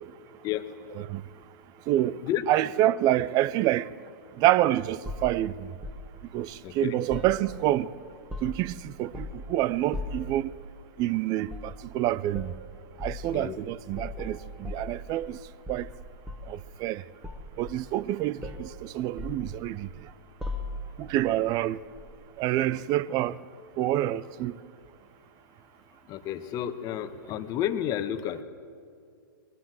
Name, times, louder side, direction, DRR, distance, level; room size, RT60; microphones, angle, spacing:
voice 1, 1.9-2.2 2.5-3.9 4.4-5.7 6.3-7.9 8.4-10.5 11.0-12.5 13.0-15.4 15.7-15.9 16.5-17.0 17.6-19.9 21.0-21.8 22.4-23.4 23.8-24.6, right 14 dB, 35° right, 0.6 m, -27 dB
sound 1, 5.0-6.1 7.1-7.8 8.1-8.7 9.1-9.5 9.9-10.3 11.5-11.8 12.3-12.6 13.0-13.3 13.9-15.4 15.7-16.6 17.2-18.1 18.4-18.7 19.2-20.0 20.4-21.0 22.0-22.1, left 2 dB, 5° right, 1.9 m, -38 dB
voice 2, 6.6-6.9 13.3-13.5 26.1-28.4, left 11 dB, 30° left, 1.3 m, -31 dB
21.5 x 20.5 x 7.6 m
hypercardioid pair, 125°, 12 cm